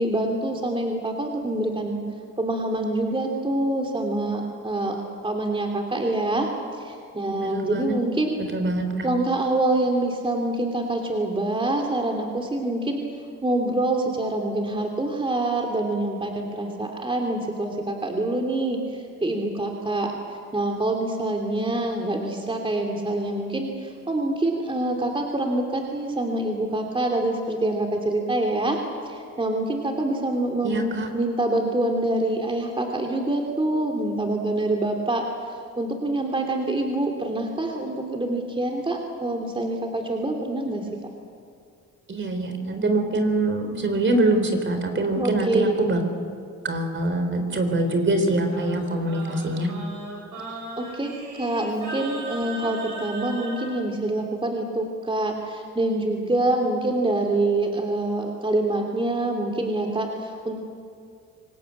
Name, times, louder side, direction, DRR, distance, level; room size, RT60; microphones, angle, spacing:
voice 1, 0.0-2.0 2.4-5.0 5.2-6.5 6.8-8.4 9.0-13.0 13.4-20.1 20.5-28.8 29.0-35.2 35.8-40.9 45.2-45.8 50.8-51.1 51.4-60.5, right 2 dB, 15° right, 2 dB, 2.9 m, -26 dB
voice 2, 7.4-8.0 8.4-9.1 30.6-31.1 42.1-46.0 46.6-49.7, right 2 dB, 40° right, 7 dB, 3.9 m, -24 dB
Singing, 47.7-53.7, right 1 dB, 80° right, 7.6 m, -37 dB
26.5 x 19.0 x 8.5 m, 2.3 s
cardioid pair, 90°, 30 cm